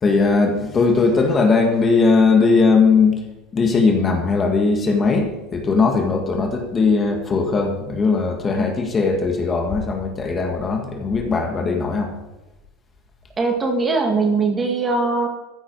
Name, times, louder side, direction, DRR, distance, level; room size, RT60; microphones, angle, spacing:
voice 1, 0.0-3.2 3.5-12.1, left 4 dB, 20° left, 2 dB, 1.9 m, -19 dB
voice 2, 13.4-15.3, right 3 dB, 15° right, 3 dB, 1.9 m, -20 dB
14.5 x 9.9 x 4.8 m, 1.0 s
supercardioid pair, 145°, 0 cm